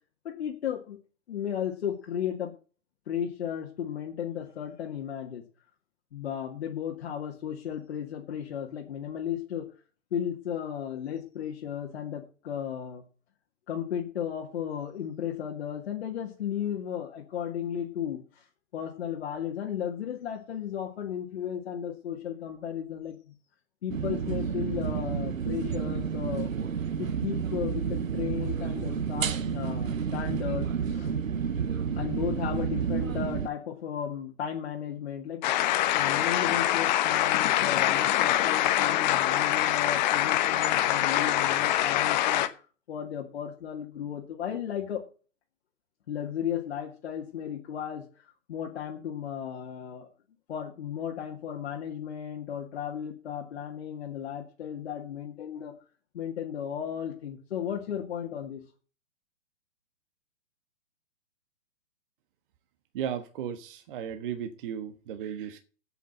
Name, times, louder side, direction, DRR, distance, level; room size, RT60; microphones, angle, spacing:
voice 1, 0.2-1.0 1.3-2.5 3.1-5.4 6.1-9.7 10.1-13.0 13.7-18.5 18.7-23.2 23.8-26.5 27.0-31.1 32.0-35.4 35.9-42.5 42.9-45.0 46.1-50.1 50.5-55.7 56.1-58.6, left 9 dB, 55° left, 2.0 m, -35 dB
sound 1, 23.9-33.5, right 7 dB, 80° right, 1.0 m, -30 dB
sound 2, 35.4-42.5, left 13 dB, 35° left, 1.1 m, -24 dB
voice 2, 62.9-65.6, right 9 dB, 40° right, 1.4 m, -35 dB
8.4 x 8.2 x 7.6 m
hypercardioid pair, 130°, 39 cm